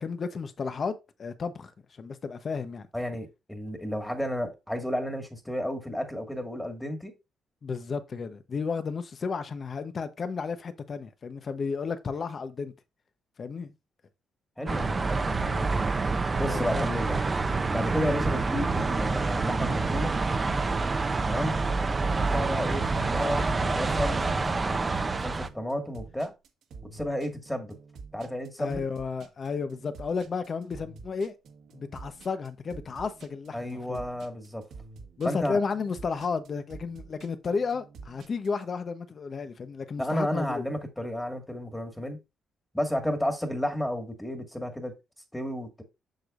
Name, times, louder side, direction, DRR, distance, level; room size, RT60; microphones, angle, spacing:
voice 1, 0.0-1.7 2.0-2.9 7.6-12.7 13.4-13.7 16.5-16.9 28.6-31.3 31.7-34.0 35.2-40.6, left 5 dB, 45° left, 1.0 m, -33 dB
voice 2, 2.9-7.1 14.6-15.8 16.4-17.2 17.7-20.1 21.3-21.6 22.1-26.3 26.8-27.8 28.1-28.8 33.5-34.6 35.2-35.6 40.0-42.2 42.7-44.9 45.3-45.8, equal, 5° left, 1.9 m, -32 dB
sound 1, 14.7-25.5, right 3 dB, 30° right, 0.8 m, -27 dB
sound 2, 22.7-38.6, right 4 dB, 70° right, 1.6 m, -48 dB
7.7 x 6.3 x 2.6 m
cardioid pair, 90°, 0 cm